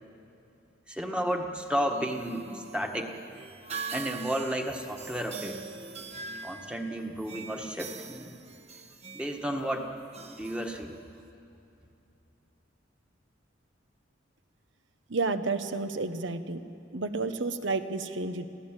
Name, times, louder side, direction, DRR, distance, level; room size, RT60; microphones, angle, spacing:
voice 1, 0.9-3.1 3.9-5.6 6.4-8.4 9.1-9.9 10.3-11.0, equal, 5° right, 3 dB, 1.5 m, -32 dB
sound 1, 1.8-11.3, right 4 dB, 35° right, 1.2 m, -43 dB
voice 2, 15.1-16.6 16.9-18.5, right 3 dB, 70° right, 10 dB, 1.1 m, -31 dB
28.0 x 16.0 x 9.0 m, 2.8 s
head